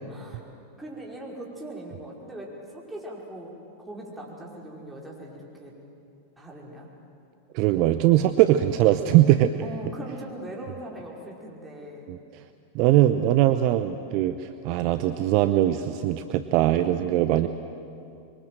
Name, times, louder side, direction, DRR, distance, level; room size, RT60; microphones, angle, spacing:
voice 1, 0.1-0.4 0.8-5.7 6.4-6.9 9.6-12.1, right 1 dB, 5° right, -3 dB, 5.4 m, -40 dB
voice 2, 7.5-9.6 12.1-12.2 12.7-17.5, right 13 dB, 45° right, 10 dB, 0.8 m, -21 dB
26.0 x 23.0 x 7.7 m, 2.6 s
figure-of-eight pair, 90°, 0 cm